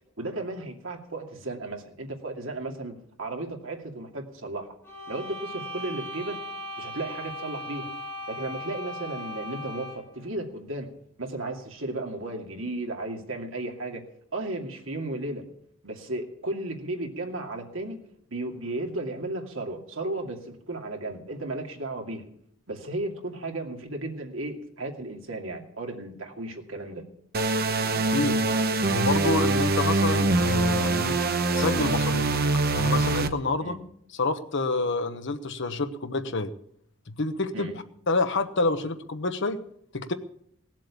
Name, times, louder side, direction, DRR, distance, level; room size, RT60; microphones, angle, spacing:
voice 1, 0.2-4.7 5.1-6.4 6.8-7.9 8.3-10.9 11.2-14.0 14.3-15.4 15.8-18.0 18.3-22.3 22.7-27.0 33.6-33.8 37.5-37.7, right 2 dB, 70° right, 2 dB, 2.5 m, -34 dB
sound 1, 4.8-10.1, equal, 10° left, 6.6 m, -38 dB
sound 2, 27.3-33.3, right 2 dB, 50° right, 1.0 m, -24 dB
voice 2, 28.0-28.4 28.9-31.2 31.5-32.3 32.7-33.8 34.2-36.5 37.2-37.7 38.1-39.6 39.9-40.1, left 3 dB, 60° left, 9 dB, 1.1 m, -28 dB
18.5 x 7.5 x 8.4 m, 0.68 s
head